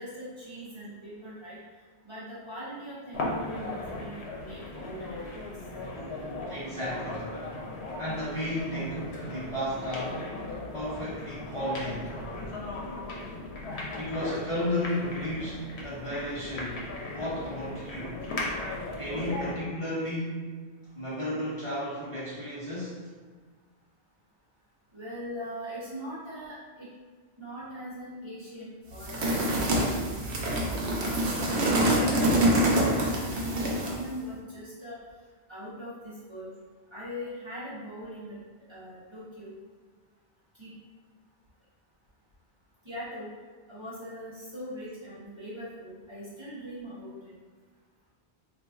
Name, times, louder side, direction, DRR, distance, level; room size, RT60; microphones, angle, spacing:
voice 1, 0.0-1.6 2.0-5.2 11.5-11.8 19.3-19.6 24.9-26.9 27.4-30.6 31.0-31.4 31.9-35.0 35.5-36.5 36.9-38.4 38.7-39.5 40.6-40.7 42.8-43.3 43.7-47.3, equal, 30° right, -10 dB, 0.9 m, -40 dB
sound 1, 3.1-19.6, left 2 dB, 85° left, 0.9 m, -37 dB
voice 2, 6.5-7.3 8.0-10.2 10.7-11.9 13.9-16.8 17.1-18.2 19.0-20.5 21.0-22.9, left 1 dB, 35° left, -10 dB, 0.7 m, -33 dB
sound 2, 29.0-34.0, right 1 dB, 85° right, 0.9 m, -25 dB
3.9 x 2.5 x 2.3 m, 1.5 s
omnidirectional pair, 1.1 m